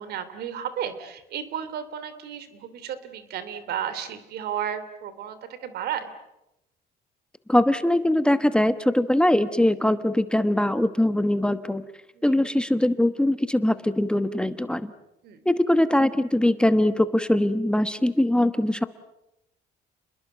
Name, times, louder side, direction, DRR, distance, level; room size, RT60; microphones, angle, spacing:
voice 1, 0.0-6.1 12.2-12.3 15.2-15.4, right 9 dB, 70° right, 12 dB, 3.1 m, -33 dB
voice 2, 7.5-11.8 12.2-14.9 15.4-18.8, left 1 dB, 5° left, 11 dB, 1.1 m, -22 dB
30.0 x 21.5 x 8.0 m, 0.90 s
cardioid pair, 110°, 17 cm